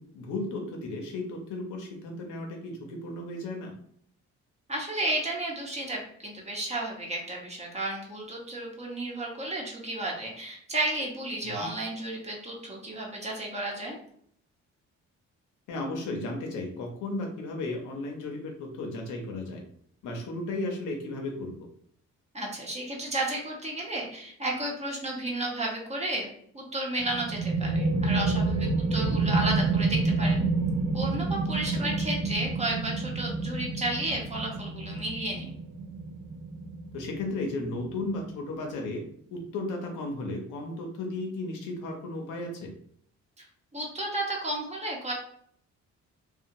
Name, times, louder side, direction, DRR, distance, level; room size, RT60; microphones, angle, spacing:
voice 1, 0.1-3.7 11.4-11.7 15.7-19.6 20.0-21.5 29.0-29.2 31.7-31.9 36.9-39.0 39.3-42.7, left 2 dB, 85° left, 2 dB, 0.8 m, -34 dB
voice 2, 4.7-14.0 22.3-30.4 30.9-35.6 43.4-43.5 43.7-45.1, right 1 dB, 20° right, -2 dB, 0.9 m, -33 dB
sound 1, 27.0-38.4, right 3 dB, 50° right, 0.6 m, -29 dB
2.8 x 2.3 x 2.6 m, 0.63 s
cardioid pair, 90°, 30 cm